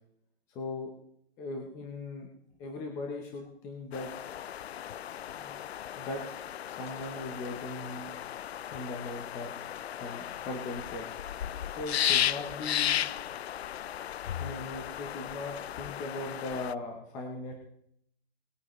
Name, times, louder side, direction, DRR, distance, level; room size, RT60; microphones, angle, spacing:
voice 1, 0.5-0.9 1.4-2.3 2.6-4.1 5.4-5.6 6.0-6.2 6.7-8.1 8.7-9.5 9.9-11.1 11.8-13.0 14.4-17.5, left 2 dB, 10° left, 2 dB, 0.7 m, -39 dB
sound 1, 3.9-16.7, left 10 dB, 90° left, 0.5 m, -35 dB
19.5 x 9.5 x 3.1 m, 0.71 s
hypercardioid pair, 170°, 31 cm